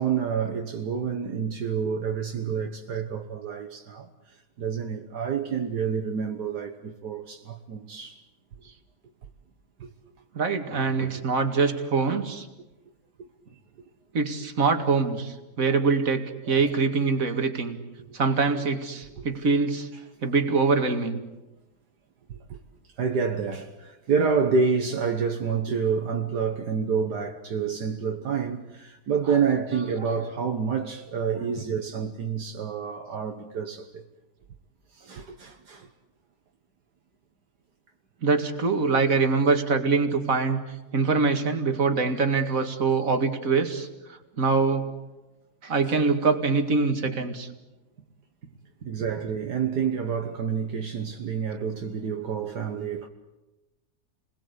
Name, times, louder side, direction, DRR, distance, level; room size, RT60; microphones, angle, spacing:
voice 1, 0.0-8.2 9.8-9.9 13.2-13.3 15.6-15.8 16.5-16.7 18.1-18.2 19.2-19.3 22.3-22.6 23.0-34.0 34.9-35.9 45.8-46.0 48.9-53.1, right 6 dB, 70° right, 1.9 m, -28 dB
voice 2, 10.3-12.5 14.1-17.8 18.1-19.9 20.2-21.2 29.2-29.9 31.4-31.7 38.2-40.6 40.9-43.9 44.4-44.9 45.6-47.5, right 4 dB, 55° right, 2.5 m, -24 dB
29.5 x 21.5 x 8.3 m
omnidirectional pair, 1.8 m